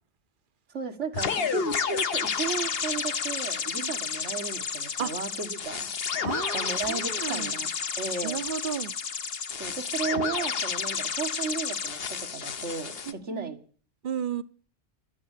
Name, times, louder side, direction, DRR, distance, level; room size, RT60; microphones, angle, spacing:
voice 1, 0.7-5.9 6.5-7.7 8.0-8.4 9.6-13.6, right 5 dB, 85° right, 2.0 m, -34 dB
sound 1, 1.1-13.1, left 6 dB, 60° left, 1.2 m, -31 dB
voice 2, 6.2-7.5 8.2-9.0 13.1-13.5 14.0-14.4, right 8 dB, 50° right, 1.0 m, -33 dB
13.5 x 8.6 x 8.2 m
omnidirectional pair, 1.2 m